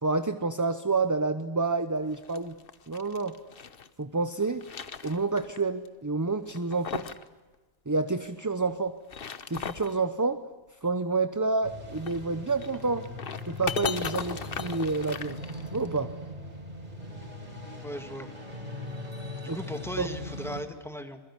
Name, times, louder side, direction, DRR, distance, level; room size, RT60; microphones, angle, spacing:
voice 1, 0.0-2.5 2.9-3.3 4.0-4.7 5.0-7.1 7.9-9.0 9.5-10.4 10.8-13.1 13.4-15.4 15.7-16.1 19.5-19.6 20.0-20.1, right 3 dB, 20° right, 10 dB, 0.8 m, -28 dB
sound 1, 2.1-3.9 4.3-5.6 5.8-5.9 6.5-7.3 7.5-7.6 8.9-10.0 11.9-16.0, left 6 dB, 55° left, 1.2 m, -37 dB
sound 2, 11.6-20.6, left 1 dB, 35° right, 4.8 m, -40 dB
voice 2, 17.8-18.3 19.4-21.2, equal, ahead, 6 dB, 2.1 m, -37 dB
27.0 x 22.0 x 9.9 m, 1.3 s
omnidirectional pair, 1.1 m